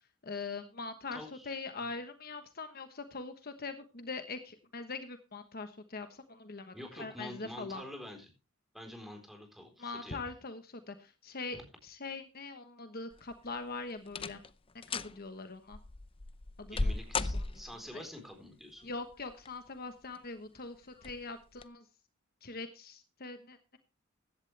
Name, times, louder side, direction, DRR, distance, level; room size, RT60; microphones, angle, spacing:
voice 1, 0.2-7.8 9.8-14.4 14.9-15.8 16.6-16.9 17.3-17.4 17.9-18.1 18.8-21.8 22.4-23.8, left 3 dB, 50° left, 8 dB, 1.2 m, -42 dB
voice 2, 1.1-1.6 6.7-8.3 8.7-10.2 11.5-11.6 16.7-18.9, left 1 dB, ahead, 4 dB, 4.0 m, -47 dB
sound 1, 13.1-13.6 14.1-14.5 14.8-15.2 15.7-17.9 19.1-19.7 20.2-20.3 21.0-21.2 21.6-21.7, left 3 dB, 25° left, 0.6 m, -36 dB
16.0 x 11.0 x 3.3 m, 0.30 s
head